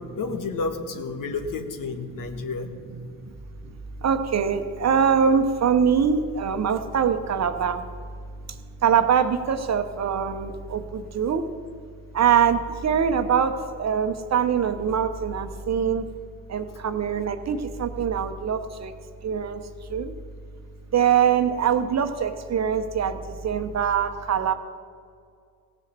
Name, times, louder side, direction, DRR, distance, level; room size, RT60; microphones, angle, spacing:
voice 1, 0.0-2.7, left 4 dB, 55° left, 7 dB, 1.6 m, -31 dB
voice 2, 4.0-7.9 8.5-11.4 12.1-16.1 16.5-18.9 19.2-19.6 19.9-20.1 20.9-24.5, right 7 dB, 40° right, 8 dB, 1.1 m, -23 dB
17.0 x 6.5 x 6.9 m, 2.2 s
hypercardioid pair, 65°, 39 cm